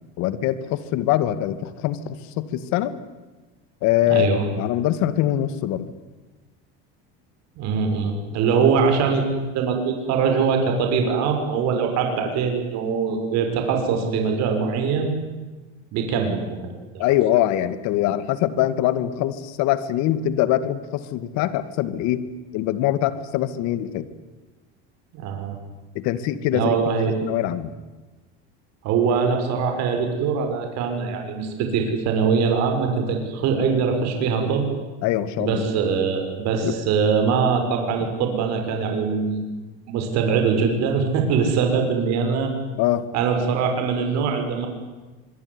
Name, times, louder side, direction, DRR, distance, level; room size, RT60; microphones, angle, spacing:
voice 1, 0.2-2.9 3.8-5.9 17.0-22.2 22.5-24.1 25.9-26.8 27.2-27.7 35.0-35.6 36.6-36.7 42.8-43.0, left 13 dB, 65° left, 13 dB, 2.3 m, -23 dB
voice 2, 4.1-4.5 7.6-15.1 15.9-17.0 25.1-25.6 26.5-27.2 28.8-34.7 35.4-39.5 39.9-42.5 43.1-44.7, right 5 dB, 60° right, 4 dB, 6.4 m, -22 dB
25.0 x 22.5 x 9.9 m, 1.2 s
cardioid pair, 130°, 30 cm